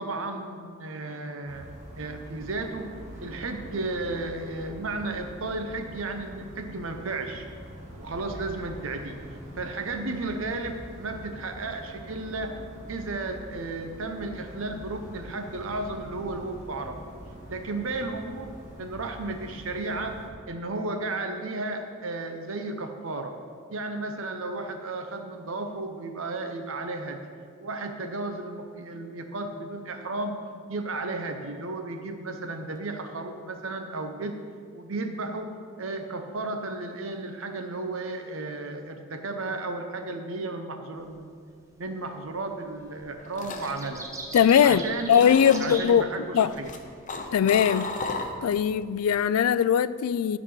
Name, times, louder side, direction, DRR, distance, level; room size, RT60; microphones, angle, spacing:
voice 1, 0.0-1.7 1.9-2.9 3.2-7.4 8.0-9.2 9.6-12.5 12.9-17.0 17.5-18.5 18.7-20.2 20.5-23.3 23.7-27.2 27.6-30.4 30.7-34.4 34.7-35.5 35.8-41.3 41.8-44.1 44.6-45.2 45.6-46.7, right 2 dB, 65° right, 0.8 m, -33 dB
sound 1, 1.4-20.3, equal, 35° right, 1.7 m, -44 dB
sound 2, 41.0-41.2 42.4-42.8 43.1-46.7, right 2 dB, 15° right, 0.8 m, -40 dB
sound 3, 42.9-44.8 45.1-45.9 46.4-48.7 49.0-49.4, left 3 dB, 35° left, 0.7 m, -35 dB
voice 2, 44.3-46.1 46.3-46.5 47.3-47.9 48.4-50.4, left 8 dB, 85° left, 0.3 m, -21 dB
12.5 x 4.1 x 6.0 m
head